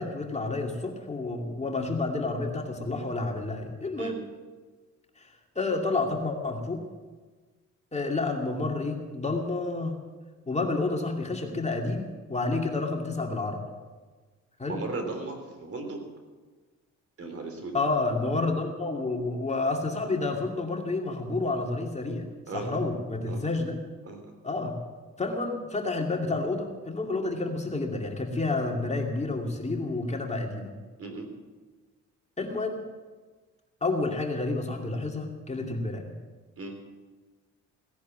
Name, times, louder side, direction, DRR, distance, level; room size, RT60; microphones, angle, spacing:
voice 1, 0.0-4.2 5.2-6.8 7.9-10.0 10.5-13.6 14.6-14.8 17.7-22.3 22.5-23.7 24.4-24.7 25.2-30.7 32.4-32.8 33.8-36.1, left 3 dB, 20° left, 2 dB, 2.4 m, -30 dB
voice 2, 14.6-16.1 17.2-17.8 22.5-22.8 23.3-23.6 24.0-24.2 31.0-31.3 36.6-36.8, right 3 dB, 50° right, 5 dB, 3.6 m, -36 dB
17.0 x 10.5 x 7.5 m, 1.3 s
cardioid pair, 90°, 30 cm